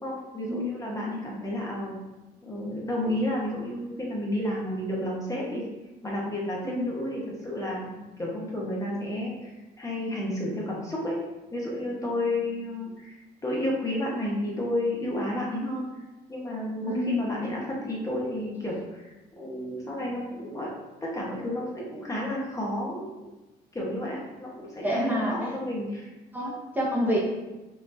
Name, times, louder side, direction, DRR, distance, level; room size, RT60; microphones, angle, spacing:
voice 1, 0.0-2.0 2.4-5.6 6.0-11.2 11.5-15.9 16.3-20.7 21.0-23.3 23.7-26.1 27.0-27.2, left 1 dB, 20° left, -4 dB, 1.0 m, -31 dB
voice 2, 16.9-17.3 24.8-25.3 26.3-27.2, left 1 dB, 10° right, -5 dB, 0.9 m, -27 dB
5.7 x 2.8 x 2.6 m, 1.1 s
cardioid pair, 110°, 17 cm